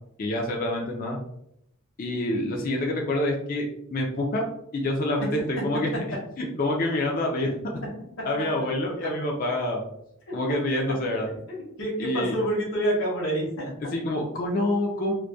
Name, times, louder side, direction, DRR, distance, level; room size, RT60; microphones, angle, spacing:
voice 1, 0.2-1.2 2.0-4.4 4.7-5.9 6.4-7.5 8.2-9.9 10.3-11.3 12.0-12.3 13.9-15.1, left 1 dB, 40° left, 0 dB, 0.3 m, -27 dB
voice 2, 11.5-13.9, right 1 dB, 65° left, -4 dB, 0.8 m, -28 dB
2.2 x 2.1 x 2.6 m, 0.75 s
head